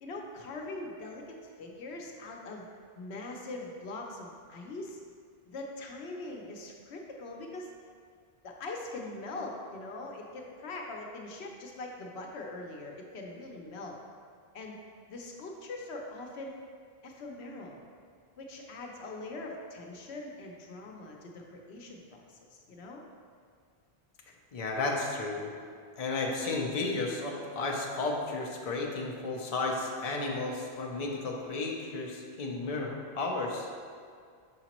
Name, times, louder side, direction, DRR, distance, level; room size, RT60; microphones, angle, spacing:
voice 1, 0.0-2.7 3.0-5.0 5.5-7.7 8.4-14.0 14.5-14.8 15.1-16.5 17.0-17.8 18.4-23.0, left 2 dB, 85° left, 1 dB, 1.0 m, -42 dB
voice 2, 24.5-25.5 26.0-33.7, left 3 dB, 40° left, 0 dB, 0.7 m, -33 dB
6.4 x 4.9 x 3.0 m, 2.2 s
omnidirectional pair, 1.1 m